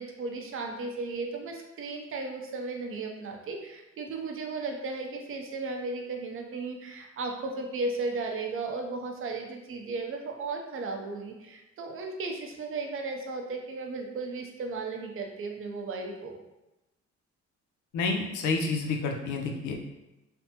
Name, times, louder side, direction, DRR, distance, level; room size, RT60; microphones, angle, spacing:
voice 1, 0.0-16.4, right 3 dB, 45° right, 2 dB, 0.6 m, -35 dB
voice 2, 17.9-19.7, left 4 dB, 80° left, 2 dB, 0.6 m, -29 dB
3.3 x 2.0 x 2.8 m, 0.98 s
cardioid pair, 90°, 30 cm